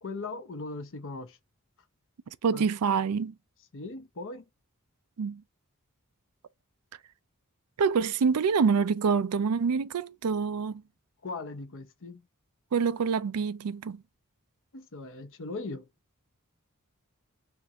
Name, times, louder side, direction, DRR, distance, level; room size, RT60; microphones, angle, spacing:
voice 1, 0.0-1.4 2.5-2.7 3.7-4.5 11.2-12.2 14.7-15.9, left 3 dB, 60° left, 0.8 m, -39 dB
voice 2, 2.4-3.3 5.2-5.4 7.8-10.8 12.7-14.0, right 5 dB, 85° right, 0.4 m, -26 dB
5.8 x 2.6 x 2.9 m
head